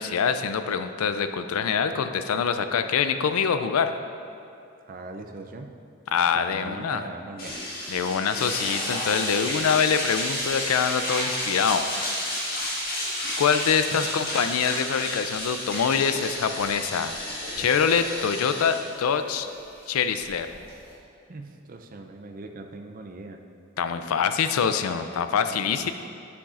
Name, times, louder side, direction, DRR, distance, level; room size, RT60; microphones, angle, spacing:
voice 1, 0.0-3.9 6.1-7.0 7.9-11.9 13.4-17.1 17.6-19.5 19.9-20.5 23.8-25.9, left 6 dB, 85° left, 9 dB, 0.4 m, -25 dB
voice 2, 4.9-5.7 6.3-7.6 13.9-14.3 21.3-23.4 25.4-25.8, right 2 dB, 40° right, 4 dB, 0.4 m, -41 dB
sound 1, 7.4-20.9, left 1 dB, 40° left, 1.5 m, -31 dB
9.6 x 7.1 x 2.5 m, 2.7 s
head